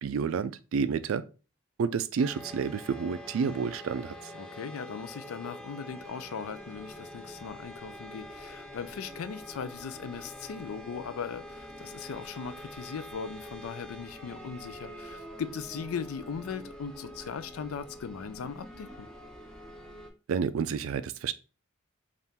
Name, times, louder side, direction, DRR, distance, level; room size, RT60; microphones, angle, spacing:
voice 1, 0.0-1.2 1.8-4.3 20.3-21.3, right 6 dB, 70° right, 0.3 m, -30 dB
sound 1, 2.2-20.1, equal, 5° left, 0.8 m, -45 dB
voice 2, 4.3-19.1, left 6 dB, 85° left, 0.4 m, -39 dB
3.5 x 2.5 x 4.1 m
head